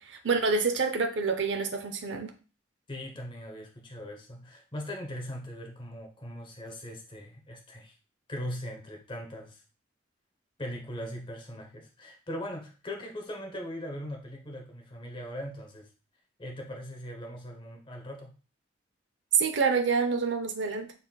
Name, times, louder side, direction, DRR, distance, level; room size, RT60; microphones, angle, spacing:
voice 1, 0.1-2.3 19.3-20.9, right 5 dB, 65° right, 5 dB, 0.6 m, -27 dB
voice 2, 2.9-7.9 8.3-9.6 10.6-15.9 16.4-18.3, equal, 25° left, 1 dB, 0.9 m, -40 dB
5.4 x 4.1 x 2.3 m, 0.35 s
head